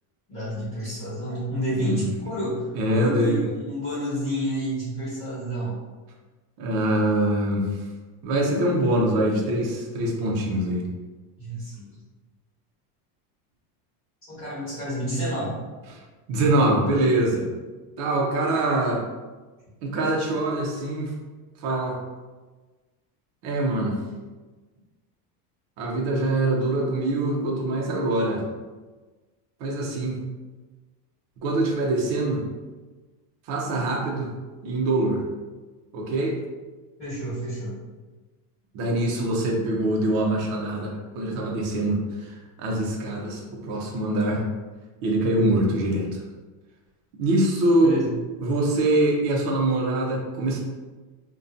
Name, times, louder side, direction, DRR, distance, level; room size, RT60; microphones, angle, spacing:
voice 1, 0.3-5.8 11.4-11.9 14.3-15.6 37.0-37.8 47.8-48.1, equal, 25° left, -10 dB, 1.2 m, -29 dB
voice 2, 2.8-3.5 6.6-7.7 8.2-10.8 15.9-16.0 16.3-17.5 18.0-19.0 19.8-21.1 21.6-22.0 23.4-24.0 25.8-28.4 29.6-30.2 31.4-32.4 33.5-34.3 34.6-35.2 35.9-36.4 38.7-44.4 45.0-46.1 47.2-48.0 48.4-50.6, right 1 dB, 45° right, -2 dB, 0.5 m, -24 dB
2.6 x 2.2 x 2.4 m, 1.3 s
cardioid pair, 170°, 46 cm